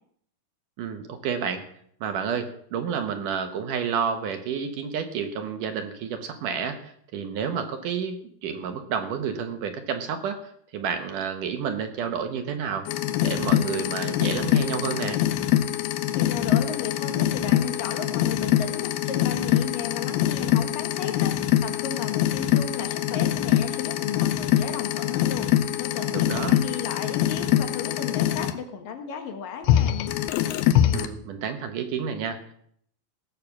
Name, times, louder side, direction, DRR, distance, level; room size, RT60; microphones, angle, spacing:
voice 1, 0.8-1.6 2.0-10.4 10.7-12.9 13.2-15.2 26.1-26.6 30.9-32.4, right 7 dB, 65° right, 7 dB, 2.3 m, -30 dB
sound 1, 12.9-28.5 29.6-31.1, left 12 dB, 85° left, 2.7 m, -24 dB
voice 2, 16.1-21.3 21.6-29.9, left 6 dB, 65° left, 6 dB, 2.9 m, -34 dB
17.5 x 6.7 x 7.3 m, 0.65 s
omnidirectional pair, 4.6 m